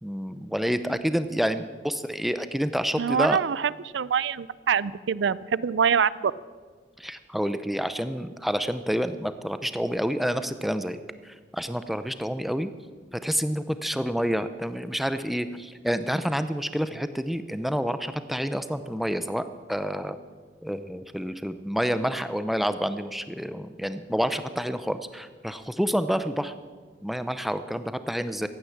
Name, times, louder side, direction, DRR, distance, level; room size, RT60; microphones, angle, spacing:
voice 1, 0.0-3.4 7.0-11.0 11.2-12.7 13.1-19.4 19.7-20.2 20.6-26.5 27.0-28.5, equal, ahead, 11 dB, 0.6 m, -28 dB
voice 2, 3.0-6.3, right 7 dB, 75° right, 19 dB, 0.4 m, -25 dB
15.5 x 10.0 x 7.3 m, 1.5 s
head